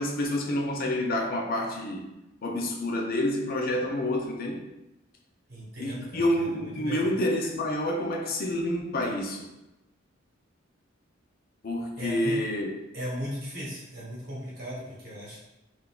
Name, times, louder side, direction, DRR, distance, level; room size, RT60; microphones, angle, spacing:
voice 1, 0.0-2.0 2.4-4.6 5.8-9.5 11.6-12.7, left 1 dB, 45° left, 1 dB, 0.5 m, -28 dB
voice 2, 5.5-7.0 12.0-12.4 12.9-15.4, equal, 50° right, -7 dB, 1.0 m, -37 dB
3.6 x 2.4 x 2.3 m, 0.94 s
head